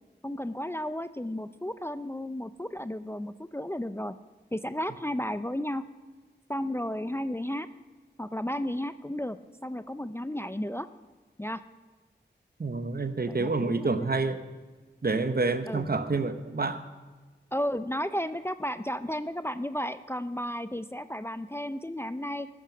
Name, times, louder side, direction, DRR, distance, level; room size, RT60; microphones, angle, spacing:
voice 1, 0.2-4.2 4.5-5.9 6.5-7.7 8.2-10.9 11.4-11.6 13.2-14.1 15.7-15.9 17.5-22.5, equal, 15° left, 12 dB, 0.5 m, -33 dB
voice 2, 12.6-14.4 15.0-16.8, right 3 dB, 55° right, 10 dB, 1.0 m, -28 dB
14.5 x 11.5 x 6.1 m, 1.3 s
wide cardioid pair, 65°, 19 cm